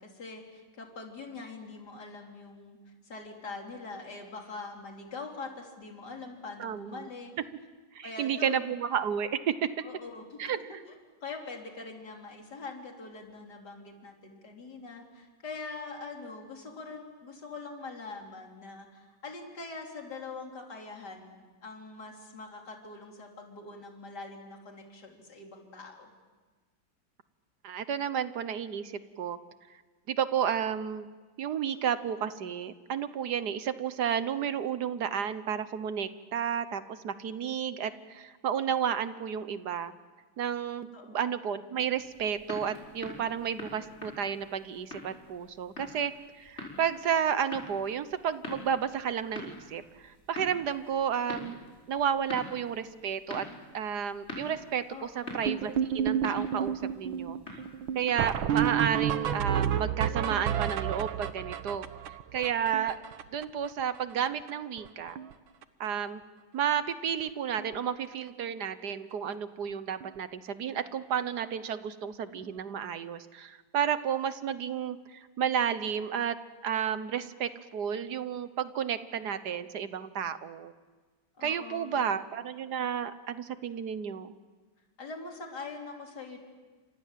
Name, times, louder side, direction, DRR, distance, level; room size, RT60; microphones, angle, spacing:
voice 1, 0.0-7.3 8.0-8.8 9.8-10.8 11.2-26.1 40.9-41.2 54.9-55.9 56.8-57.4 81.4-82.2 85.0-86.4, left 3 dB, 50° left, 1 dB, 4.0 m, -43 dB
voice 2, 6.6-7.1 7.9-9.7 10.4-10.8 27.6-29.4 30.1-31.1 31.4-39.9 40.4-51.6 51.9-53.5 53.7-57.4 57.9-61.9 62.3-63.0 63.3-65.2 65.8-66.2 66.5-76.4 76.6-80.7 81.4-84.4, right 8 dB, 60° right, 13 dB, 1.4 m, -32 dB
sound 1, 42.0-58.4, left 2 dB, 30° left, 5.4 m, -45 dB
sound 2, 55.5-63.7 64.0-64.1 64.3-64.5 64.8-65.3 65.6-65.9 66.7-66.8 67.2-67.3 67.6-67.7 70.0-70.1 72.4-72.5, right 9 dB, 75° right, 1.9 m, -31 dB
30.0 x 26.0 x 7.5 m, 1.3 s
omnidirectional pair, 2.2 m